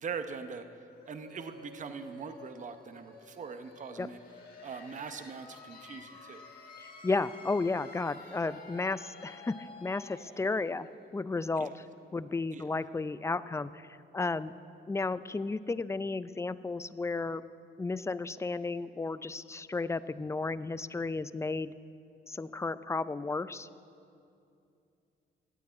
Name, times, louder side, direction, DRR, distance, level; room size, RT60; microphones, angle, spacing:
voice 1, 0.0-0.6 1.1-4.2 4.6-6.4 11.6-11.7 12.5-12.6, right 5 dB, 40° right, 8 dB, 0.8 m, -41 dB
sound 1, 0.9-12.4, left 4 dB, 50° left, 2.7 m, -52 dB
voice 2, 6.8-10.9 11.1-11.8 12.1-13.9 14.1-14.5 14.9-17.4 17.8-21.7 22.3-23.7, left 3 dB, 15° left, 15 dB, 0.4 m, -33 dB
14.0 x 8.6 x 9.4 m, 2.6 s
cardioid pair, 90°, 20 cm